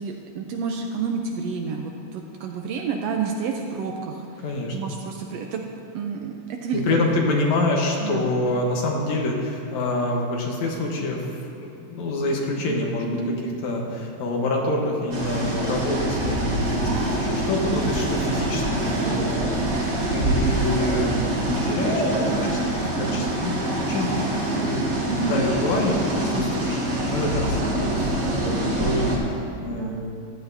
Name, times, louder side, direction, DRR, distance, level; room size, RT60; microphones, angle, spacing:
voice 1, 0.0-4.4 4.7-5.6 5.9-7.3 8.0-8.3 12.7-12.8 13.0-13.3 19.0-19.3 23.1-23.3 24.5-24.7 25.1-25.4 29.8-30.1, right 5 dB, 75° right, 2 dB, 1.6 m, -30 dB
voice 2, 4.4-4.8 6.7-13.2 13.6-19.3 19.7-24.2 24.6-24.8 25.2-30.1, left 2 dB, 70° left, 0 dB, 2.5 m, -27 dB
sound 1, 15.1-29.2, right 1 dB, 40° right, 1.9 m, -25 dB
15.0 x 11.0 x 2.7 m, 2.5 s
omnidirectional pair, 3.4 m